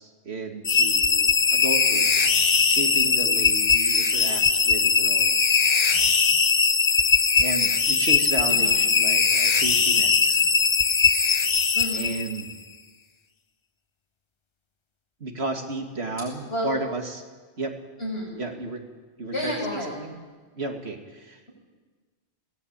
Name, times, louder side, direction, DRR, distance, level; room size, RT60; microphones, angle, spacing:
voice 1, 0.0-2.2 2.6-5.5 7.4-10.5 11.9-12.6 15.2-17.2 17.6-17.8 18.4-18.8 19.2-20.2 20.5-21.4, right 2 dB, 80° right, 3 dB, 2.5 m, -33 dB
sound 1, 0.6-12.5, left 5 dB, 35° left, 0.6 m, -20 dB
voice 2, 11.7-12.1 16.5-16.7 18.0-18.4 19.3-20.0, equal, 75° left, -2 dB, 8.2 m, -30 dB
21.5 x 17.5 x 8.9 m, 1.4 s
omnidirectional pair, 1.1 m